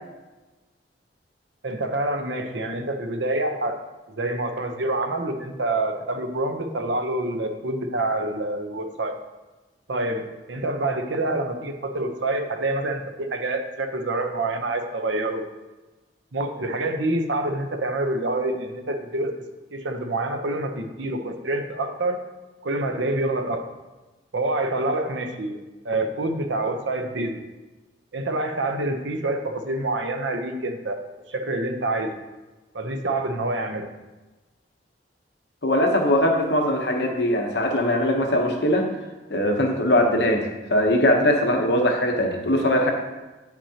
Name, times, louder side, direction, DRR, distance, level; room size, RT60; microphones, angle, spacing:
voice 1, 1.6-3.8 4.1-9.2 9.9-15.4 16.3-19.3 19.7-22.2 22.6-23.6 24.3-25.6 25.8-27.4 28.1-31.0 31.3-32.1 32.7-33.9, right 2 dB, 85° right, 6 dB, 0.8 m, -27 dB
voice 2, 35.6-38.9 39.3-42.9, left 1 dB, 65° left, 3 dB, 0.9 m, -21 dB
8.2 x 6.0 x 2.8 m, 1.2 s
head